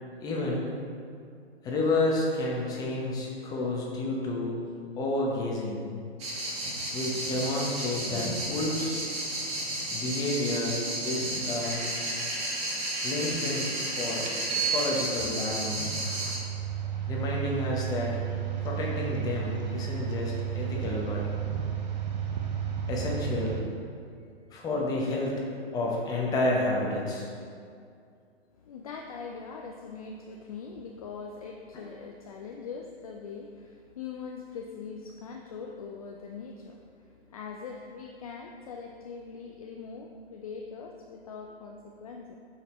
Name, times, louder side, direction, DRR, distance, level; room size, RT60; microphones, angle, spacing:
voice 1, 0.2-0.7 1.6-4.5 5.0-5.8 6.9-9.0 9.9-10.8 11.0-11.8 13.0-14.3 14.7-16.0 17.1-18.2 18.6-21.3 22.9-23.6 24.5-25.4 25.7-27.3, left 2 dB, 10° left, -2 dB, 1.0 m, -30 dB
sound 1, 6.2-16.4, right 1 dB, 20° right, 1.6 m, -33 dB
sound 2, 13.3-13.4 14.2-23.6, right 9 dB, 40° right, 1.0 m, -33 dB
voice 2, 28.5-42.4, left 5 dB, 35° left, 2 dB, 0.5 m, -42 dB
8.1 x 5.7 x 4.3 m, 2.3 s
figure-of-eight pair, 125°, 31 cm